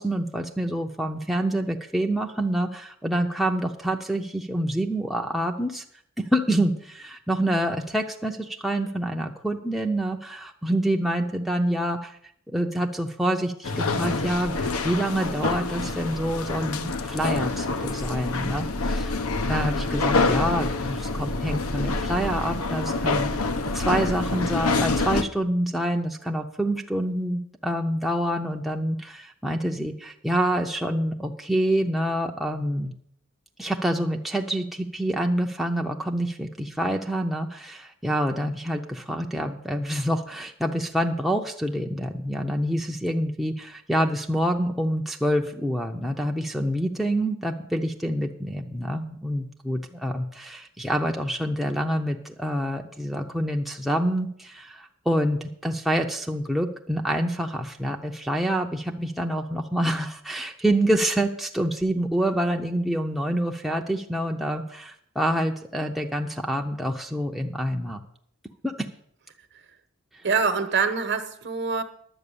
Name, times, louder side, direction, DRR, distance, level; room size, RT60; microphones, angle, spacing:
voice 1, 0.0-5.8 6.3-12.2 12.5-32.9 33.6-68.0 68.6-68.9, right 1 dB, ahead, 1 dB, 0.6 m, -27 dB
sound 1, 13.6-25.2, left 3 dB, 75° left, 0.8 m, -26 dB
voice 2, 70.2-71.8, right 5 dB, 50° right, 9 dB, 1.0 m, -24 dB
11.0 x 8.0 x 6.8 m, 0.66 s
head